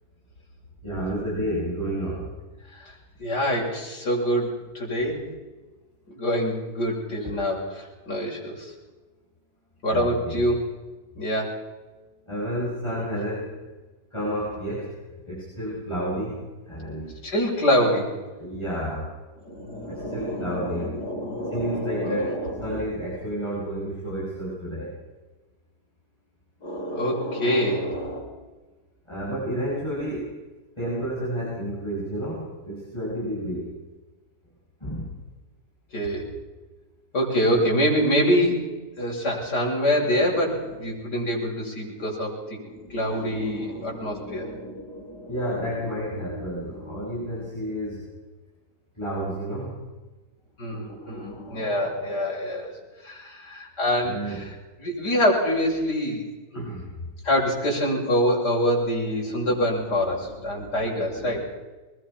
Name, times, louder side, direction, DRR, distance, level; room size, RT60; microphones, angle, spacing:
voice 1, 0.8-2.3 9.9-10.4 12.3-13.5 14.1-14.9 15.3-17.1 18.4-19.1 19.9-20.9 21.5-22.3 22.6-24.9 29.1-30.3 30.8-33.7 34.8-35.1 37.5-37.6 45.3-48.0 49.0-49.8 54.0-54.6 56.5-56.9, equal, 15° left, -8 dB, 7.6 m, -30 dB
voice 2, 2.7-5.3 6.1-8.7 9.8-10.6 11.2-11.6 17.2-18.1 19.5-22.8 26.6-28.2 35.9-36.2 37.1-38.6 39.0-47.0 50.6-52.7 53.0-54.5 54.8-56.2 56.5-56.7 57.2-61.4, equal, 80° left, -3 dB, 6.9 m, -26 dB
24.0 x 21.5 x 5.9 m, 1.2 s
omnidirectional pair, 1.8 m